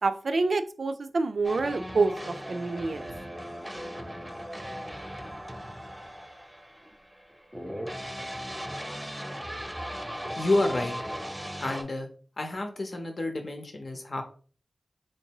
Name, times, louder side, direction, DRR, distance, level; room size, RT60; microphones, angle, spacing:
voice 1, 0.0-3.1, right 3 dB, 70° right, 9 dB, 0.3 m, -27 dB
sound 1, 1.4-11.8, equal, 5° right, 0.7 m, -38 dB
voice 2, 10.4-11.0 11.6-12.1 12.4-14.2, left 2 dB, 60° left, 4 dB, 0.8 m, -29 dB
4.4 x 2.6 x 2.9 m, 0.42 s
cardioid pair, 45°, 0 cm